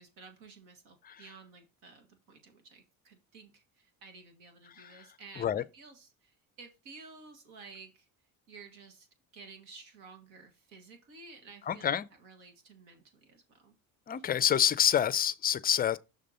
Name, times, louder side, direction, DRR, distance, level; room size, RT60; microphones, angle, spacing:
voice 1, 0.0-8.1 8.5-9.1 9.3-13.7 14.2-14.3, right 4 dB, 90° right, 1.8 m, -53 dB
voice 2, 11.7-12.1 14.1-16.0, left 9 dB, 25° left, 0.3 m, -27 dB
6.6 x 3.6 x 5.6 m
supercardioid pair, 90°, 46 cm